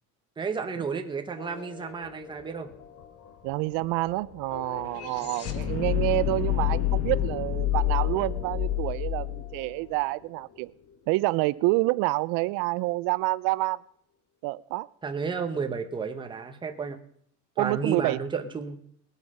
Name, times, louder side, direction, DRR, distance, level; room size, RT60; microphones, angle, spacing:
voice 1, 0.4-2.7 15.0-17.0 17.6-18.8, right 5 dB, 15° right, 6 dB, 0.9 m, -32 dB
sound 1, 1.4-10.5, left 10 dB, 80° left, 1.8 m, -48 dB
sound 2, 2.0-2.1 2.4-10.6, left 13 dB, 45° left, 1.5 m, -29 dB
voice 2, 3.4-10.7 11.1-13.8 14.4-14.9 17.6-18.2, right 21 dB, 80° right, 18 dB, 0.5 m, -28 dB
19.5 x 8.2 x 5.4 m, 0.66 s
cardioid pair, 180°, 33 cm